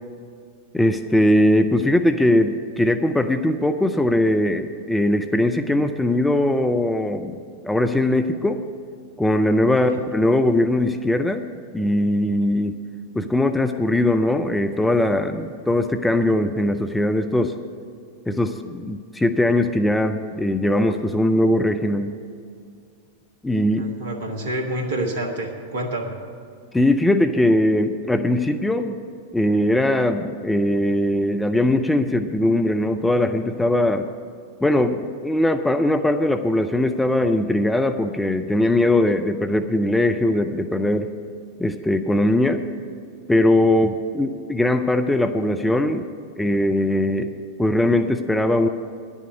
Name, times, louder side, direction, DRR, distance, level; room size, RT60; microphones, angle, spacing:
voice 1, 0.7-8.6 9.2-11.4 11.7-12.7 13.1-17.5 18.3-22.1 23.4-23.8 26.7-29.0 29.3-34.1 34.6-41.1 41.6-42.6 43.3-46.1 46.4-47.3 47.6-48.7, left 1 dB, 5° left, 7 dB, 0.5 m, -20 dB
voice 2, 23.8-26.2, right 1 dB, 60° right, 4 dB, 1.5 m, -28 dB
10.5 x 7.3 x 9.5 m, 2.2 s
figure-of-eight pair, 90°, 0 cm